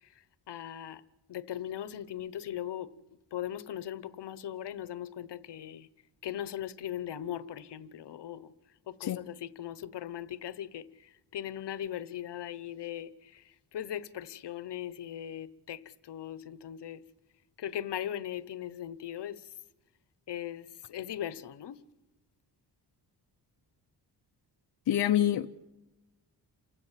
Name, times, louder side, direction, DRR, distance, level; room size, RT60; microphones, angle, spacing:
voice 1, 0.5-1.0 1.3-2.9 3.3-5.9 6.2-8.5 8.9-10.8 11.3-13.1 13.7-15.8 16.1-17.0 17.6-19.4 20.3-21.8, left 11 dB, 75° left, 1.0 m, -39 dB
voice 2, 24.9-25.7, left 11 dB, 60° left, 0.7 m, -27 dB
29.0 x 16.0 x 7.5 m
wide cardioid pair, 165°, 41 cm